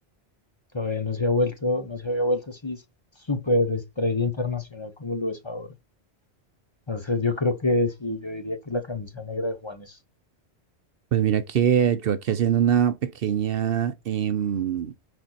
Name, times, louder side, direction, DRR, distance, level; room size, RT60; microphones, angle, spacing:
voice 1, 0.7-2.8 3.3-5.7 6.9-10.0, left 2 dB, 25° left, 1.0 m, -26 dB
voice 2, 11.1-14.9, right 9 dB, 65° right, 0.8 m, -23 dB
6.5 x 4.3 x 4.1 m
omnidirectional pair, 1.1 m